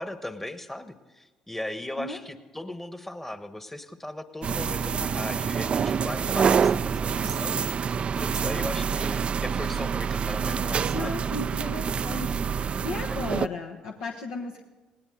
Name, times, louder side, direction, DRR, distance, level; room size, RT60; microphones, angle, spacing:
voice 1, 0.0-7.8 8.1-11.2, left 1 dB, 10° left, 11 dB, 1.3 m, -37 dB
sound 1, 4.4-13.5, right 6 dB, 40° right, 0.4 m, -27 dB
voice 2, 10.9-14.6, left 3 dB, 70° left, 0 dB, 1.2 m, -35 dB
19.5 x 18.0 x 3.9 m, 1.2 s
hypercardioid pair, 55°, 3 cm